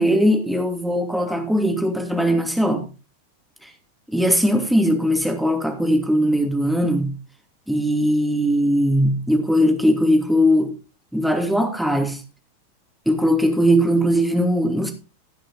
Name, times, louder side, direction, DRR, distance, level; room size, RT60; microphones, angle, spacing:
voice 1, 0.0-2.9 3.6-3.7 4.1-7.1 7.7-10.7 11.1-12.2 13.1-14.9, equal, ahead, 2.6 m, -19 dB
16.0 x 6.2 x 4.2 m
figure-of-eight pair, 90°, 0 cm